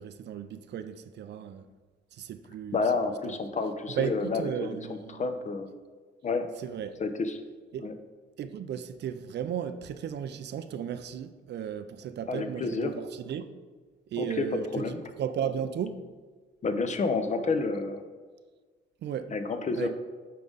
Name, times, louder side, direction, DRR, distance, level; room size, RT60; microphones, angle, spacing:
voice 1, 0.0-1.6 2.1-2.8 3.3-3.4 4.0-5.3 6.6-6.9 7.7-7.9 8.4-13.5 14.1-16.0 19.0-19.3 19.8-19.9, right 8 dB, 60° right, 0.5 m, -35 dB
voice 2, 2.7-5.7 6.2-6.5 7.0-7.4 7.8-7.9 12.3-12.9 14.2-14.5 14.7-15.0 16.6-18.0 19.3-19.9, left 4 dB, 35° left, 0.7 m, -30 dB
8.6 x 3.7 x 3.9 m
cardioid pair, 90°, 20 cm